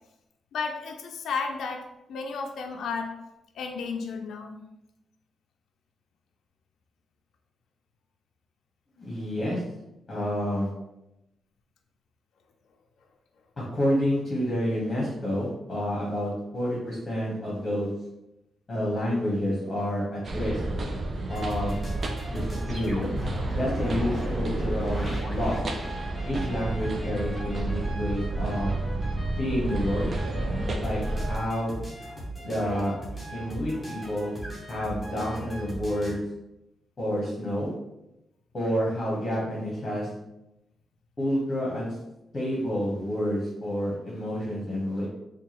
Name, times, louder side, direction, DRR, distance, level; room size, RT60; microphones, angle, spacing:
voice 1, 0.5-3.1 3.5-4.6, left 5 dB, 80° left, 3 dB, 0.4 m, -33 dB
voice 2, 9.0-9.6 10.1-10.7 13.6-17.9 18.7-20.6 21.3-21.8 22.3-23.1 23.4-25.6 26.2-28.7 29.4-30.1 30.8-31.0 31.3-31.8 32.4-32.9 33.3-34.4 34.7-36.2 37.0-37.7 38.5-40.1 41.2-41.9 42.3-45.1, equal, 25° left, -5 dB, 0.9 m, -29 dB
sound 1, 20.2-31.4, right 2 dB, 35° right, 0.4 m, -31 dB
sound 2, 21.3-36.1, right 1 dB, 5° left, 0.8 m, -38 dB
4.5 x 2.2 x 2.9 m, 0.90 s
wide cardioid pair, 175°, 0 cm